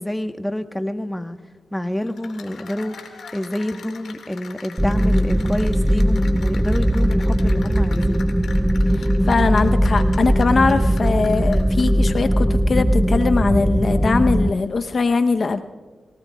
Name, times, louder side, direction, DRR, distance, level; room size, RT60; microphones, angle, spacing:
voice 1, 0.0-1.4 1.7-3.0 3.3-8.3, left 1 dB, 10° left, 1.1 m, -27 dB
Cheering / Applause, 2.0-12.3, left 6 dB, 85° left, 1.9 m, -41 dB
sound 1, 4.8-14.5, equal, 10° right, 0.5 m, -19 dB
voice 2, 8.9-15.6, left 4 dB, 60° left, 0.8 m, -21 dB
25.0 x 17.5 x 2.3 m
cardioid pair, 50°, 0 cm